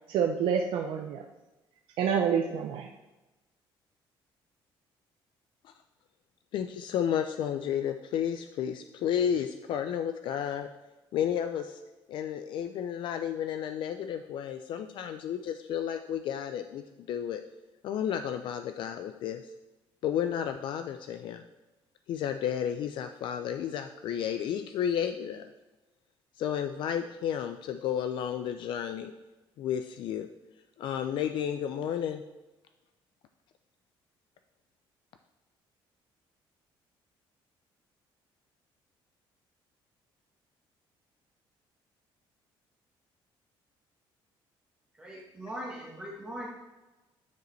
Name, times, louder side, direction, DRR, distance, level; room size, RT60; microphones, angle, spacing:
voice 1, 0.1-1.2 2.0-2.9, right 7 dB, 70° right, 3 dB, 0.6 m, -27 dB
voice 2, 6.5-10.7 11.1-11.8 12.1-17.4 17.8-19.4 20.0-21.4 22.1-25.5 26.4-29.1 29.6-30.3 30.8-32.2, left 9 dB, 60° left, 8 dB, 0.4 m, -32 dB
voice 3, 45.0-46.5, equal, 10° right, -4 dB, 1.1 m, -40 dB
9.2 x 5.1 x 3.1 m, 1.1 s
cardioid pair, 155°, 9 cm